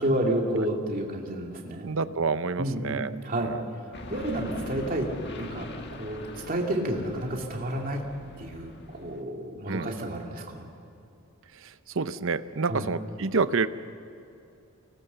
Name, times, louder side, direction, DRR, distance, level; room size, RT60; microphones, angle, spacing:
voice 1, 0.0-1.9 2.6-3.5 3.8-5.1 5.4-8.0 8.4-10.7 12.7-12.9, right 1 dB, 40° right, 0 dB, 2.6 m, -30 dB
voice 2, 1.8-3.1 3.4-3.7 9.7-9.9 11.5-13.7, right 4 dB, 60° right, 13 dB, 0.7 m, -28 dB
sound 1, 3.9-9.2, left 1 dB, 50° left, 1.6 m, -41 dB
25.0 x 19.0 x 6.9 m, 2.7 s
head